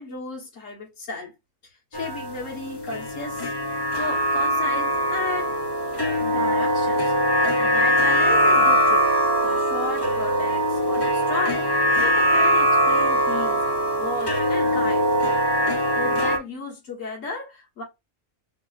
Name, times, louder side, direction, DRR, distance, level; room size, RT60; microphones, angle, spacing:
voice 1, 0.0-1.3 1.9-3.5 3.9-5.6 6.2-7.1 7.6-9.1 9.4-13.6 14.0-15.1 15.9-17.8, left 3 dB, 75° left, 1.7 m, -34 dB
sound 1, 1.9-16.4, equal, 25° left, 0.5 m, -22 dB
5.2 x 2.1 x 2.5 m
omnidirectional pair, 1.3 m